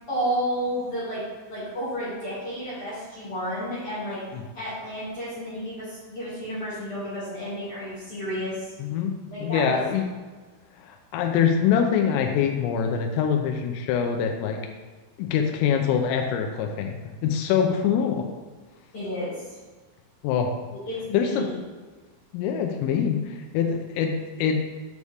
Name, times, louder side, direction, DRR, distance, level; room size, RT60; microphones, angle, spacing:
voice 1, 0.1-1.2 1.5-4.2 4.5-8.7 9.3-9.8 18.9-19.6 20.9-21.6, equal, 35° left, -11 dB, 2.6 m, -31 dB
voice 2, 8.8-9.1 9.4-10.1 10.9-14.6 15.2-18.2 20.2-20.5 21.1-21.5 22.3-24.6, left 7 dB, 85° left, 3 dB, 3.3 m, -24 dB
8.2 x 6.3 x 3.6 m, 1.3 s
omnidirectional pair, 5.9 m